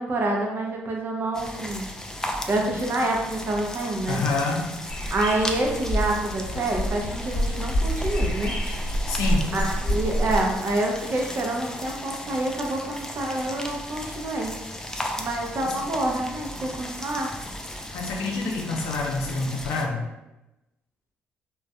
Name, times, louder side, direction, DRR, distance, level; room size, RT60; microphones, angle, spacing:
voice 1, 0.0-1.9 2.5-4.2 5.1-8.5 9.5-14.5 15.2-17.3, right 2 dB, 50° right, 0 dB, 0.6 m, -27 dB
sound 1, 1.3-19.9, left 1 dB, 10° left, 0.4 m, -36 dB
voice 2, 4.1-4.7 9.1-9.5 15.6-15.8 17.9-20.1, left 3 dB, 80° left, 0 dB, 0.5 m, -27 dB
sound 2, 4.9-10.6, equal, 35° left, 0.9 m, -27 dB
2.5 x 2.2 x 2.2 m, 0.95 s
supercardioid pair, 55°, 5 cm